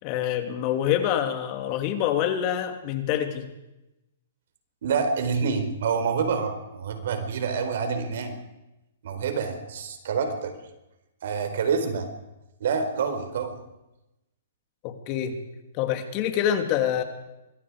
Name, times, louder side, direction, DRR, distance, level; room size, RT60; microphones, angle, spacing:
voice 1, 0.0-3.5 14.8-15.4 15.7-17.0, left 10 dB, 35° left, 6 dB, 2.8 m, -26 dB
voice 2, 4.8-8.4 9.0-10.6 11.2-12.1 12.6-13.6, right 5 dB, 65° right, 7 dB, 4.5 m, -27 dB
24.5 x 22.0 x 5.0 m, 0.95 s
hypercardioid pair, 145°, 0 cm